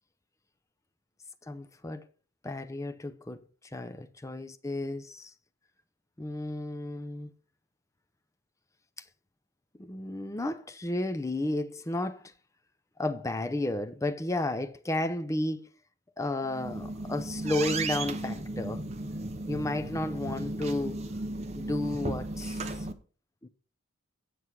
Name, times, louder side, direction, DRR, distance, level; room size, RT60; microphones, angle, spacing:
voice 1, 1.4-2.1 2.4-5.3 6.2-7.3 9.0-9.1 9.8-12.3 13.0-15.7 16.2-18.8 19.5-21.0 21.5-22.9 23.4-23.5, left 2 dB, 15° left, 0.5 m, -33 dB
sound 1, 16.4-22.9, right 2 dB, 30° right, 0.7 m, -35 dB
8.3 x 7.6 x 4.6 m
head